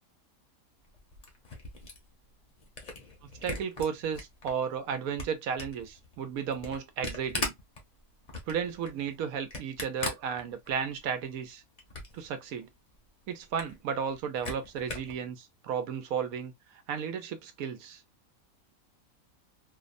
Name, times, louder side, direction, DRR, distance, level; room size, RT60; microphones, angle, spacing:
Camera, 0.8-4.5 4.9-11.0 11.3-12.3 12.6-12.7 12.9-13.0 13.4-15.2, left 2 dB, 40° left, 0.7 m, -39 dB
voice 1, 3.4-7.6 8.5-11.6 12.1-12.7 13.3-16.5 16.9-18.0, right 7 dB, 90° right, 1.1 m, -34 dB
2.8 x 2.0 x 2.4 m
omnidirectional pair, 1.5 m